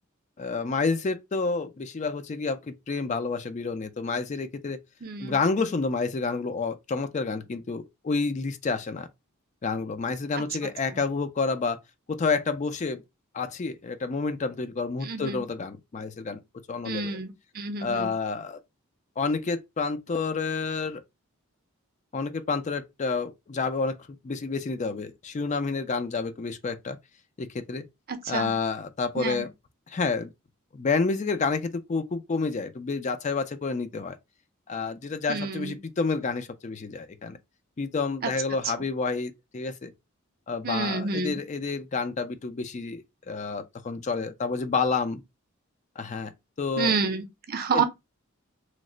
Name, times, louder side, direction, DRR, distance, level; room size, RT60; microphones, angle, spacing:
voice 1, 0.4-4.8 5.2-9.1 9.6-11.8 12.1-13.0 13.3-16.4 16.7-17.2 17.8-18.6 19.2-21.0 22.1-24.0 24.2-27.0 27.4-27.8 28.3-29.5 29.9-30.3 30.7-34.2 34.7-37.4 37.8-39.9 40.5-45.2 46.0-46.3 46.6-47.0 47.7-47.8, left 4 dB, 35° left, 0.4 m, -29 dB
voice 2, 5.0-5.4 15.0-15.4 16.8-18.1 28.1-28.5 29.2-29.4 35.3-35.8 40.6-41.4 46.8-47.8, right 4 dB, 45° right, 0.6 m, -29 dB
3.1 x 2.1 x 3.7 m
head